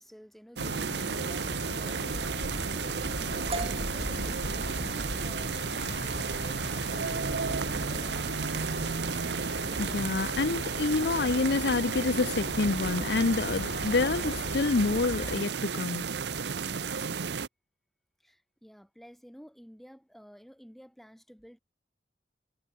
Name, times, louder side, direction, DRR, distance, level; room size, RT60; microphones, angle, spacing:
voice 1, 0.0-8.9 18.2-21.6, equal, ahead, 3.4 m, -52 dB
sound 1, 0.6-15.4, left 1 dB, 50° left, 2.4 m, -39 dB
sound 2, 0.6-17.5, right 5 dB, 75° right, 0.8 m, -33 dB
sound 3, 3.5-11.1, right 3 dB, 35° right, 1.4 m, -45 dB
voice 2, 9.8-16.0, left 3 dB, 70° left, 0.6 m, -28 dB
head